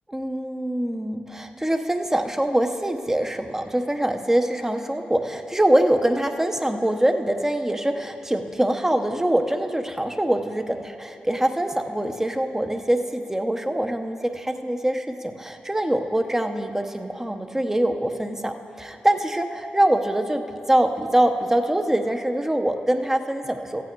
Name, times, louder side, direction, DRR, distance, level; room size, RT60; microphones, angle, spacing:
voice 1, 0.1-20.4 20.7-23.8, right 1 dB, 10° right, 6 dB, 0.9 m, -24 dB
14.0 x 8.4 x 4.6 m, 2.6 s
supercardioid pair, 50°, 3 cm